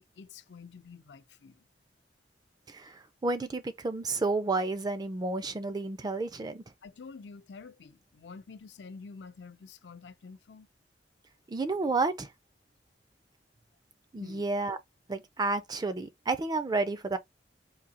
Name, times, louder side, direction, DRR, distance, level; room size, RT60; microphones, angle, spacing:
voice 1, 0.0-1.6 6.8-10.7 14.2-14.4, left 4 dB, 80° left, 0.5 m, -48 dB
voice 2, 2.7-6.6 11.5-12.3 14.1-14.8 15.1-17.2, right 3 dB, 25° right, 0.4 m, -31 dB
3.8 x 2.7 x 2.7 m
head